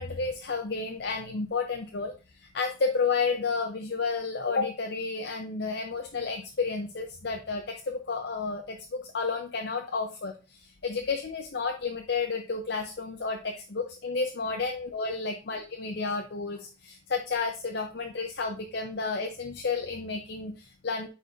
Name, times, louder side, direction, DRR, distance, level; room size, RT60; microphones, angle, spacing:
voice 1, 0.0-2.1 2.5-21.1, left 4 dB, 60° left, 3 dB, 0.7 m, -31 dB
9.2 x 4.2 x 2.6 m, 0.31 s
head